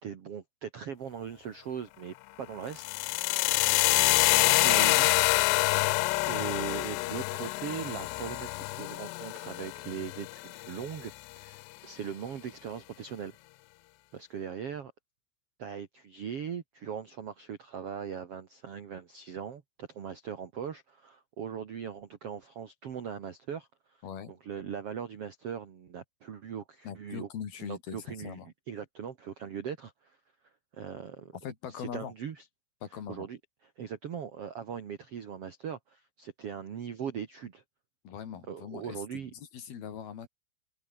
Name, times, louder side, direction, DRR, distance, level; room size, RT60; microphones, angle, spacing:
voice 1, 0.0-3.0 3.8-5.3 6.3-13.3 14.1-14.9 15.6-24.0 24.3-27.3 27.6-28.4 28.7-30.2 30.7-31.4 31.7-32.4 33.1-33.4 33.8-37.6 38.5-39.3, right 8 dB, 65° right, 1.4 m, -40 dB
sound 1, 2.7-10.8, left 22 dB, 85° left, 2.4 m, -26 dB
voice 2, 24.0-24.4 26.8-28.5 31.4-32.1 32.8-33.3 38.0-40.3, left 8 dB, 55° left, 4.7 m, -41 dB
omnidirectional pair, 5.4 m